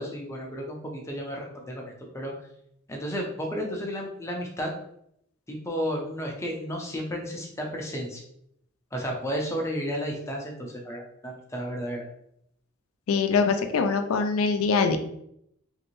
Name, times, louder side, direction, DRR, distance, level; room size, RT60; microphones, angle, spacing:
voice 1, 0.0-2.3 2.9-4.7 5.5-8.2 8.9-12.0, equal, 15° left, -1 dB, 0.5 m, -32 dB
voice 2, 13.1-15.0, left 5 dB, 85° left, 6 dB, 0.4 m, -23 dB
3.1 x 2.6 x 3.0 m, 0.74 s
head